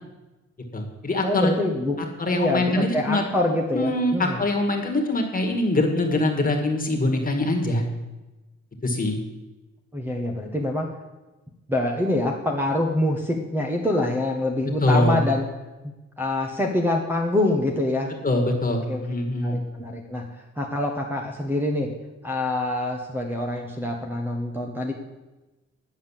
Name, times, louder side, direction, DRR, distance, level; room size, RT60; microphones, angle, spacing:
voice 1, 0.7-1.5 2.2-3.2 3.7-7.8 8.8-9.2 14.8-15.2 18.2-19.6, left 2 dB, 30° left, 1 dB, 1.9 m, -23 dB
voice 2, 1.2-2.0 2.3-4.4 9.9-10.9 11.7-15.4 15.8-18.1 18.9-19.0 19.4-20.2 20.6-21.9 22.2-24.9, left 1 dB, 5° right, -3 dB, 1.0 m, -25 dB
10.0 x 7.3 x 7.3 m, 1.1 s
wide cardioid pair, 155°, 29 cm